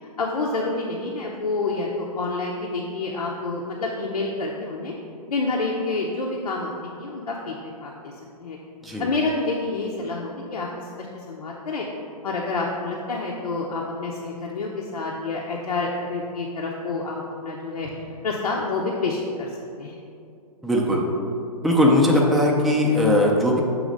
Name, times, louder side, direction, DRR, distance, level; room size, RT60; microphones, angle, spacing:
voice 1, 0.2-4.9 5.3-7.5 7.8-8.1 8.4-8.6 9.0-10.7 11.0-11.9 12.2-18.0 18.2-20.0, left 3 dB, 85° left, -2 dB, 0.7 m, -28 dB
voice 2, 20.6-21.0 21.6-23.6, left 1 dB, ahead, -3 dB, 0.4 m, -19 dB
6.3 x 3.1 x 5.1 m, 2.5 s
hypercardioid pair, 130°, 20 cm